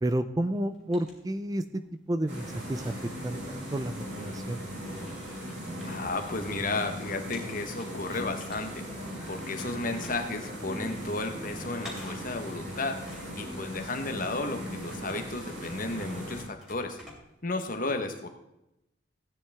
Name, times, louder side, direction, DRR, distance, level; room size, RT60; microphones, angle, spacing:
voice 1, 0.0-1.8 2.1-2.9 3.2-4.6, right 1 dB, 20° right, 10 dB, 0.4 m, -31 dB
sound 1, 0.5-1.9 2.3-4.0 4.6-4.7 5.0-6.9 7.1-9.1 9.4-17.7, left 1 dB, 5° right, 2.8 m, -51 dB
sound 2, 2.3-16.4, equal, 65° right, 4.6 m, -39 dB
voice 2, 5.8-8.9 9.3-17.0 17.4-18.3, left 2 dB, 45° left, 6 dB, 1.2 m, -33 dB
15.0 x 9.4 x 3.5 m, 0.87 s
head